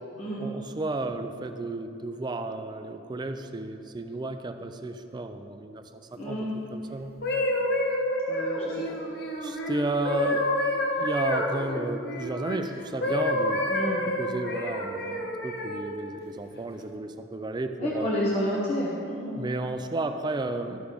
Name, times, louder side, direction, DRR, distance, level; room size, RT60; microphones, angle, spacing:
voice 1, 0.4-5.8 6.1-7.1 9.4-13.6 14.2-18.1 19.3-20.8, right 2 dB, 20° right, 8 dB, 0.4 m, -33 dB
voice 2, 6.2-6.5 8.3-9.0 13.7-14.0 17.8-19.4, equal, 30° left, -6 dB, 1.0 m, -30 dB
sound 1, 7.0-12.6 13.0-15.9 16.5-16.8, left 1 dB, 55° left, 1.1 m, -29 dB
13.0 x 5.0 x 5.1 m, 2.7 s
head